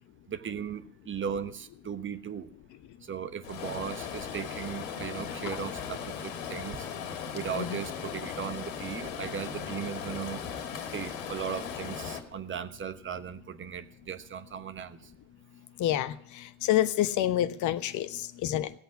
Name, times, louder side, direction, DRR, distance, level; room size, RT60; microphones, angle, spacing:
voice 1, 0.3-2.5 3.0-6.9 7.3-10.4 10.9-15.0, right 8 dB, 30° right, 12 dB, 1.3 m, -37 dB
Stream, 3.4-12.2, left 7 dB, 70° left, 2.3 m, -38 dB
voice 2, 15.8-18.7, left 12 dB, 45° left, 12 dB, 1.1 m, -28 dB
16.5 x 8.1 x 9.7 m, 0.65 s
hypercardioid pair, 75°, 41 cm